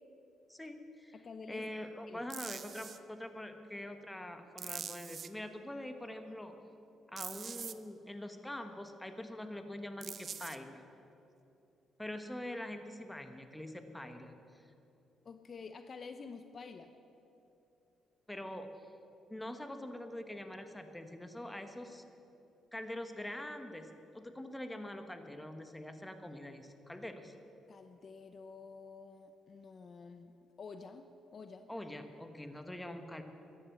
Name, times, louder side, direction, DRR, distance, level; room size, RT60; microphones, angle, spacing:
voice 1, 0.5-1.1 1.5-6.5 7.1-10.8 12.0-14.6 18.3-18.7 19.3-22.0 22.7-27.3 31.7-33.2, left 1 dB, 10° left, 7 dB, 1.3 m, -44 dB
voice 2, 1.1-1.7 2.1-2.3 15.2-16.9 27.7-30.3 30.6-31.7, left 4 dB, 45° left, 9 dB, 0.7 m, -49 dB
sound 1, 2.3-3.0 4.6-5.3 7.2-7.7 10.0-10.6, right 7 dB, 50° right, 0.6 m, -43 dB
14.5 x 11.0 x 7.1 m, 2.9 s
cardioid pair, 90°, 0 cm